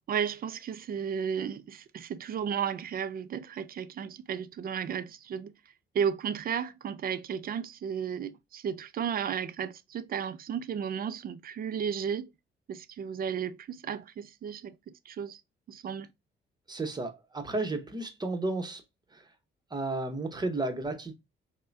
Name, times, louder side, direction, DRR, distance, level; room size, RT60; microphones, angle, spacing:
voice 1, 0.1-5.5 5.9-12.3 12.7-15.4 15.7-16.1, right 7 dB, 50° right, 0.4 m, -34 dB
voice 2, 16.7-18.8 19.1-19.2 19.7-21.1, right 2 dB, 20° right, 0.9 m, -33 dB
5.4 x 2.2 x 2.6 m
cardioid pair, 90°, 20 cm